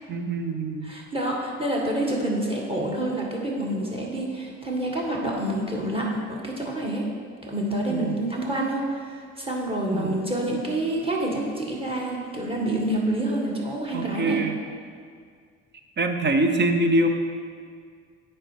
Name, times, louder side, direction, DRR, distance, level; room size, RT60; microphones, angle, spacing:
voice 1, 0.1-0.9 7.9-8.2 9.9-10.1 13.9-14.6 16.0-17.1, right 2 dB, 35° right, 6 dB, 0.8 m, -24 dB
voice 2, 0.8-7.1 7.5-8.8 9.4-14.4, right 1 dB, 20° right, -2 dB, 1.8 m, -27 dB
8.8 x 4.5 x 5.0 m, 2.1 s
cardioid pair, 85°, 29 cm